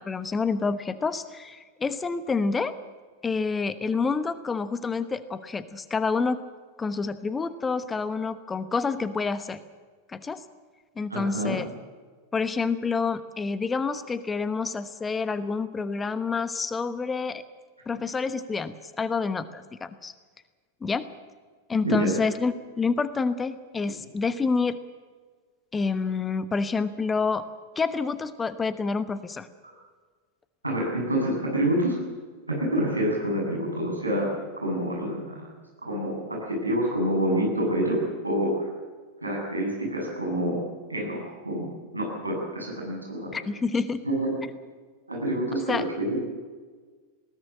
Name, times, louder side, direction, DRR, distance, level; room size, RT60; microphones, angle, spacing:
voice 1, 0.0-2.7 3.2-6.4 6.8-9.6 10.1-10.4 11.0-11.7 12.3-17.4 17.9-20.1 20.8-21.1 21.7-24.8 25.7-27.4 27.8-29.5 43.3-44.0 45.7-45.8, left 4 dB, 15° left, 13 dB, 1.1 m, -28 dB
voice 2, 11.1-11.5 21.8-22.1 30.6-32.0 32.5-34.3 34.6-35.5 35.8-38.7 39.2-40.6 40.9-43.4 44.0-44.3 45.1-46.2, right 1 dB, 85° right, -1 dB, 7.6 m, -27 dB
20.5 x 18.5 x 7.5 m, 1.5 s
figure-of-eight pair, 90°, 0 cm